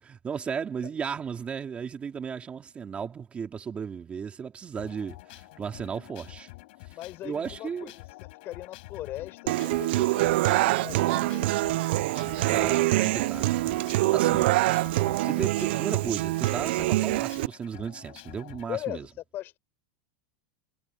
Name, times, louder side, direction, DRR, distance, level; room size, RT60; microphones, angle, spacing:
voice 1, 0.0-6.5 7.2-7.9 12.5-13.6 14.1-14.5 15.2-19.1, right 6 dB, 20° right, 3.1 m, -35 dB
sound 1, 4.8-18.7, left 23 dB, 60° left, 6.4 m, -47 dB
voice 2, 6.9-11.6 18.7-19.1 19.3-19.6, left 14 dB, 35° left, 4.7 m, -39 dB
Human voice / Acoustic guitar, 9.5-17.5, right 18 dB, 65° right, 0.4 m, -25 dB
supercardioid pair, 140°, 6 cm